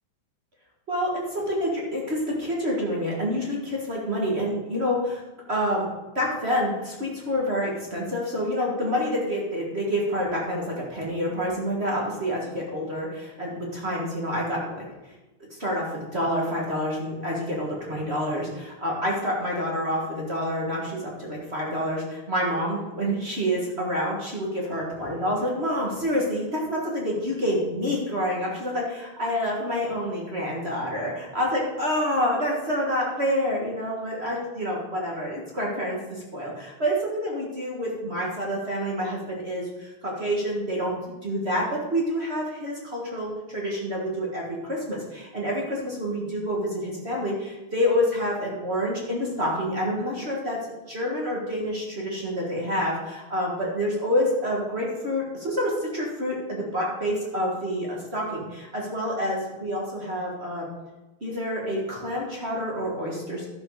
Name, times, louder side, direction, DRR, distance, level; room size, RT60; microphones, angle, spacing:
voice 1, 0.9-5.2 5.5-5.9 6.1-14.8 15.5-50.6 50.9-60.7 61.2-63.5, equal, 30° right, -3 dB, 1.1 m, -28 dB
12.5 x 6.5 x 4.8 m, 1.1 s
omnidirectional pair, 3.7 m